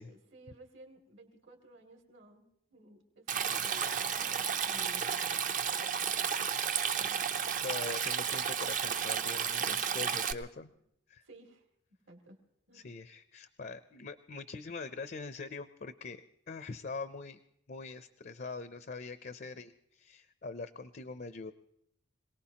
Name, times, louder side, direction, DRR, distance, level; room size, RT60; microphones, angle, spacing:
voice 1, 0.0-6.4 6.9-7.5 9.5-10.2 11.2-11.6 12.1-12.4 12.7-12.9, right 1 dB, 65° right, 3 dB, 2.5 m, -56 dB
Stream, 3.3-10.3, right 7 dB, 40° right, 0.6 m, -32 dB
voice 2, 7.6-10.7 11.1-11.2 12.7-17.4 17.7-21.5, left 3 dB, 45° left, 11 dB, 0.5 m, -43 dB
26.5 x 18.5 x 2.9 m, 0.76 s
head